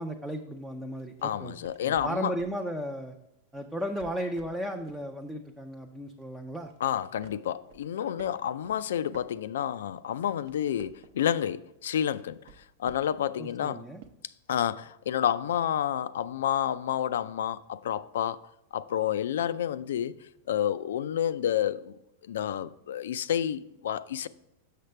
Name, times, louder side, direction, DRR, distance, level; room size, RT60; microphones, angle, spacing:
voice 1, 0.0-1.5 1.8-3.2 3.5-6.7 13.4-14.0, equal, 5° right, 0.4 m, -35 dB
sound 1, 1.0-2.7 3.7-5.1 5.5-5.7 6.2-6.8 7.2-9.8 10.2-11.4 12.1-13.3 14.0-14.1, right 7 dB, 60° right, 0.7 m, -53 dB
voice 2, 1.2-2.3 6.8-12.4 12.8-13.8 14.5-18.4 18.7-20.2 20.5-22.0 22.3-24.3, left 10 dB, 90° left, 0.3 m, -29 dB
6.6 x 6.5 x 3.2 m
supercardioid pair, 160°, 0 cm